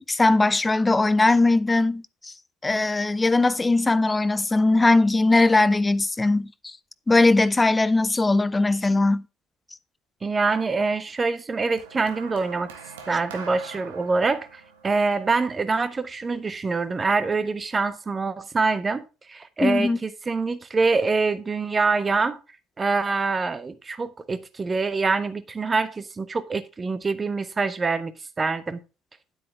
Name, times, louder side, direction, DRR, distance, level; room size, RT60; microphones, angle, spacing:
voice 1, 0.0-2.3 2.6-6.7 7.1-9.2 19.6-20.0, left 2 dB, 15° left, 0.6 m, -20 dB
voice 2, 10.2-12.7 13.1-22.4 22.8-28.1 28.4-28.8, right 4 dB, 25° right, 1.2 m, -25 dB
sound 1, 11.8-16.2 17.1-17.4, right 6 dB, 70° right, 1.5 m, -43 dB
10.0 x 8.5 x 3.5 m
figure-of-eight pair, 55°, 0 cm